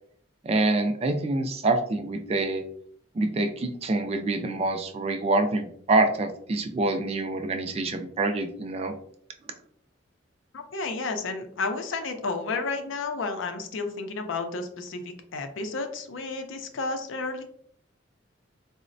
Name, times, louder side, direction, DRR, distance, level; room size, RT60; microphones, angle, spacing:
voice 1, 0.4-2.6 3.1-8.9, right 2 dB, 30° right, 6 dB, 0.3 m, -26 dB
voice 2, 10.5-17.4, left 3 dB, 80° left, 6 dB, 0.5 m, -32 dB
4.0 x 2.1 x 2.5 m, 0.64 s
head